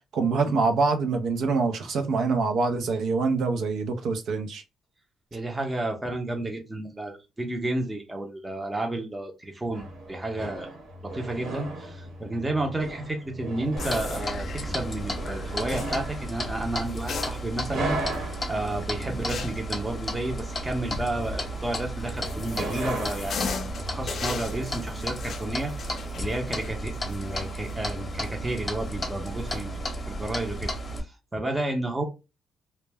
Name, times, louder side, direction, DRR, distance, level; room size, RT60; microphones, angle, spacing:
voice 1, 0.1-4.6, right 4 dB, 70° right, 0.5 m, -25 dB
voice 2, 5.3-10.7 11.0-18.0 18.5-29.8 30.1-30.8 31.3-32.0, right 2 dB, 15° right, 0.6 m, -31 dB
sound 1, 9.7-25.1, right 1 dB, 90° right, 1.0 m, -38 dB
sound 2, 13.8-14.7 15.7-16.0 16.9-17.8 18.1-18.2 19.3-19.7 21.8-27.9 28.2-28.3 29.3-29.6, left 5 dB, 60° left, 0.4 m, -37 dB
Clock, 13.8-31.0, equal, 30° left, 0.7 m, -33 dB
2.1 x 2.1 x 3.3 m
cardioid pair, 90°, 0 cm